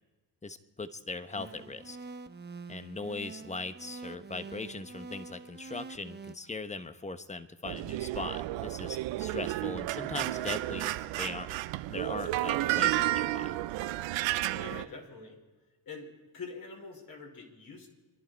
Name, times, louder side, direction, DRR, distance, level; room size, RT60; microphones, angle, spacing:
voice 1, 0.4-2.0 2.7-10.9 11.2-11.6 11.9-13.6, left 3 dB, 15° left, 11 dB, 1.1 m, -40 dB
voice 2, 1.3-1.7 14.5-15.4 15.9-17.9, left 4 dB, 50° left, 1 dB, 4.4 m, -45 dB
sound 1, 1.4-6.3, right 4 dB, 20° right, 1.0 m, -46 dB
sound 2, 7.6-14.9, right 16 dB, 75° right, 0.8 m, -32 dB
28.0 x 11.0 x 4.6 m, 1.2 s
supercardioid pair, 70°, 45 cm